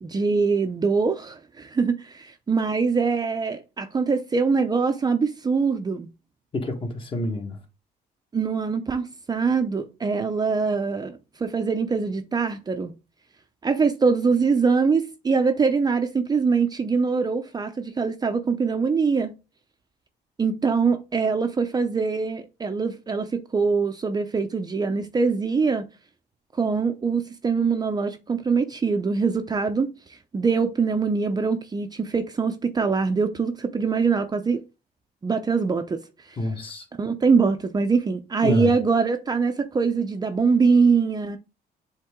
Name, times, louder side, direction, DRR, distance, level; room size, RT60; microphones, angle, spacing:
voice 1, 0.0-6.1 8.3-12.9 13.6-19.3 20.4-25.9 26.6-29.9 30.3-34.6 35.2-36.0 37.0-41.4, right 5 dB, 25° right, 0.7 m, -23 dB
voice 2, 6.5-7.6 36.4-36.8 38.4-38.7, left 2 dB, 30° left, 1.7 m, -27 dB
7.6 x 3.7 x 3.7 m
cardioid pair, 110°, 17 cm